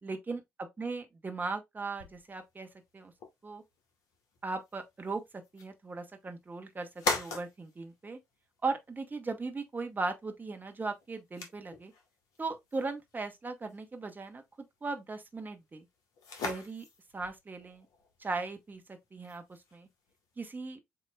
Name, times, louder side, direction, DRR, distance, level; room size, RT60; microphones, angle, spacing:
voice 1, 0.0-2.7 2.9-3.1 3.4-3.6 4.4-5.2 5.5-6.9 7.1-8.2 8.6-11.9 12.4-14.4 14.8-15.8 16.4-16.8 17.1-17.9 18.2-19.4 19.7-19.9 20.4-20.8, right 3 dB, 25° right, 1.3 m, -38 dB
sound 1, 2.0-20.4, left 4 dB, 65° left, 1.3 m, -43 dB
7.9 x 2.9 x 2.3 m
figure-of-eight pair, 45°, 7 cm